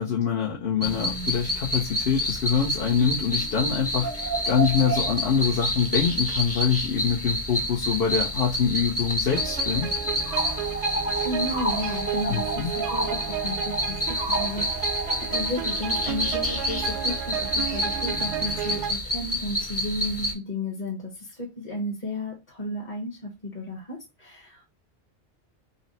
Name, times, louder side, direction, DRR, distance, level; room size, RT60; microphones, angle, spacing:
voice 1, 0.0-4.1 4.4-9.9 12.3-12.7, left 7 dB, 55° left, 1.0 m, -25 dB
sound 1, 0.8-20.3, equal, 15° left, 0.8 m, -28 dB
sound 2, 9.3-18.9, right 10 dB, 75° right, 0.9 m, -33 dB
voice 2, 11.2-24.6, left 1 dB, 35° left, 1.1 m, -33 dB
4.0 x 2.1 x 4.0 m
omnidirectional pair, 1.2 m